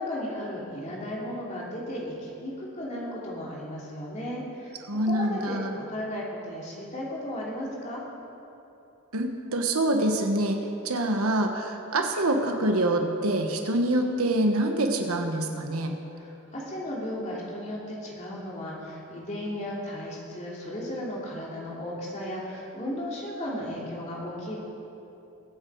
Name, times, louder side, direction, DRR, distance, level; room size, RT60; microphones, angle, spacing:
voice 1, 0.0-8.0 16.2-24.6, left 1 dB, 30° left, -5 dB, 2.8 m, -35 dB
voice 2, 4.9-5.8 9.1-10.6 10.8-15.9, right 1 dB, 80° right, 4 dB, 1.3 m, -25 dB
22.0 x 8.1 x 4.7 m, 2.9 s
head